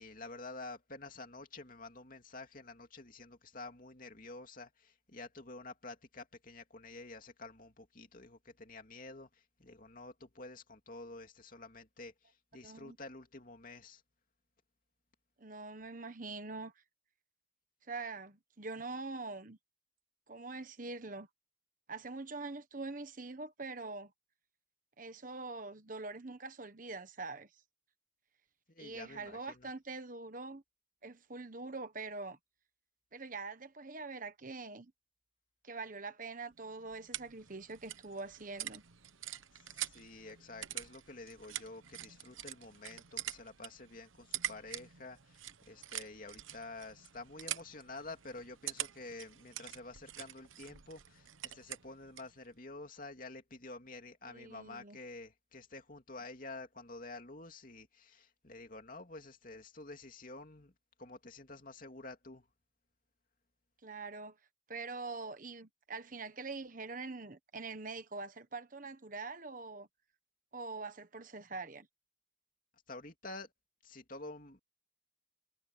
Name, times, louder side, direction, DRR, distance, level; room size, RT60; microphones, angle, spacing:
voice 1, 0.0-14.0 28.7-29.7 39.7-60.7 61.0-62.5 72.9-73.5 73.8-74.6, left 2 dB, 45° left, 2.8 m, -49 dB
voice 2, 12.6-13.0 15.4-16.7 17.9-19.6 20.3-21.3 21.9-24.1 25.0-27.5 28.8-30.6 31.0-32.4 33.1-34.9 35.6-38.8 54.3-55.0 63.8-64.4 64.7-69.9 70.5-71.9, right 3 dB, 40° right, 1.3 m, -44 dB
sound 1, 36.5-52.4, right 12 dB, 85° right, 1.0 m, -45 dB
head